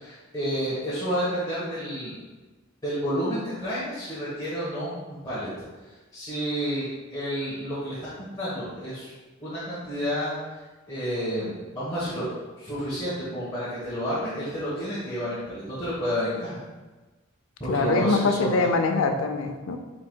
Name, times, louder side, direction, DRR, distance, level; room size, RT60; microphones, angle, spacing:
voice 1, 0.0-2.2 2.8-5.5 6.1-9.1 9.4-10.4 10.9-12.2 12.6-16.6 17.6-18.7, equal, 20° left, -11 dB, 1.1 m, -30 dB
voice 2, 17.7-19.8, left 3 dB, 75° left, 5 dB, 0.5 m, -23 dB
4.6 x 4.6 x 2.2 m, 1.2 s
head